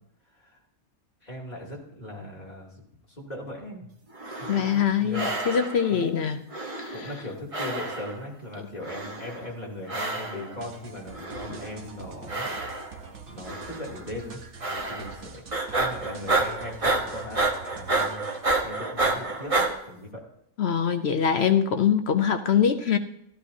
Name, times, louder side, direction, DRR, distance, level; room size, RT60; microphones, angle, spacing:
voice 1, 1.2-2.8 3.1-3.9 4.3-5.4 5.9-6.2 6.9-15.4 15.7-18.2 18.6-20.2, left 1 dB, 30° left, -3 dB, 3.0 m, -39 dB
sound 1, 4.1-4.9 5.1-5.9 6.5-7.3 7.5-8.3 8.8-9.5 9.9-10.5 11.1-11.8 12.3-13.1 13.5-13.9 14.6-15.2 15.5-19.7, right 2 dB, 25° right, 1.1 m, -29 dB
voice 2, 4.5-6.4 6.8-7.1 20.6-23.0, left 8 dB, 55° left, 8 dB, 0.8 m, -23 dB
sound 2, 10.6-18.5, right 5 dB, 55° right, 1.4 m, -45 dB
15.5 x 13.5 x 2.7 m, 0.75 s
omnidirectional pair, 1.5 m